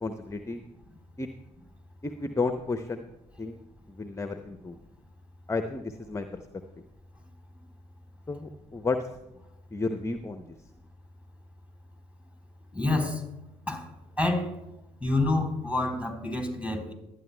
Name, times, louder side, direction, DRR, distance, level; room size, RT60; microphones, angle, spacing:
voice 1, 0.0-0.6 1.2-1.3 2.0-3.0 3.4-3.6 4.0-4.8 5.5-6.4 8.3-9.0 9.7-10.5, left 3 dB, 15° left, 8 dB, 0.7 m, -32 dB
voice 2, 12.7-13.2 13.7-13.9 14.2-14.5 15.0-16.9, left 2 dB, 5° right, 3 dB, 3.7 m, -27 dB
22.5 x 9.6 x 2.2 m, 0.93 s
hypercardioid pair, 55°, 17 cm